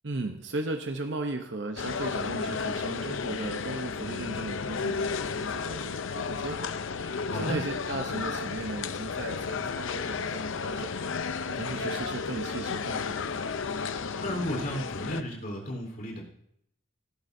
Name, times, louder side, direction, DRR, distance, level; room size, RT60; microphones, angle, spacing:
voice 1, 0.0-6.7 7.3-10.9 11.5-13.2, right 2 dB, 60° right, 5 dB, 0.8 m, -36 dB
sound 1, 1.8-15.2, left 5 dB, 70° left, 0.6 m, -33 dB
voice 2, 14.2-16.2, equal, 45° left, 0 dB, 3.9 m, -33 dB
17.5 x 14.0 x 2.7 m, 0.73 s
head